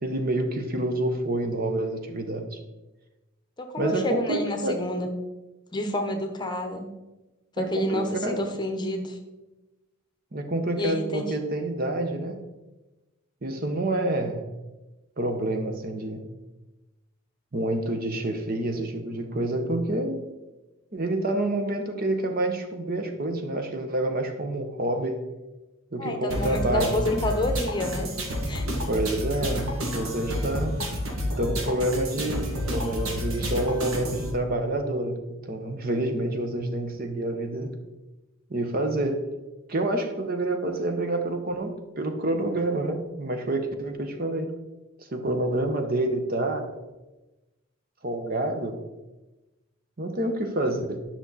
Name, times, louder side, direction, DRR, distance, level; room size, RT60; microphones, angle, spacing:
voice 1, 0.0-2.6 3.8-4.8 7.6-8.6 10.3-12.4 13.4-14.5 15.2-16.3 17.5-20.2 20.9-25.2 25.9-27.0 28.9-30.8 31.4-37.7 38.5-39.3 39.7-44.5 45.0-46.7 48.0-48.8 50.0-51.0, right 1 dB, 45° right, 5 dB, 1.0 m, -28 dB
voice 2, 3.6-5.1 5.7-6.9 7.6-9.2 10.8-11.3 26.0-28.2 28.5-28.7, left 1 dB, 20° left, 5 dB, 0.9 m, -29 dB
sound 1, 26.3-34.3, equal, 80° right, 2.0 m, -30 dB
11.0 x 6.0 x 4.0 m, 1.1 s
head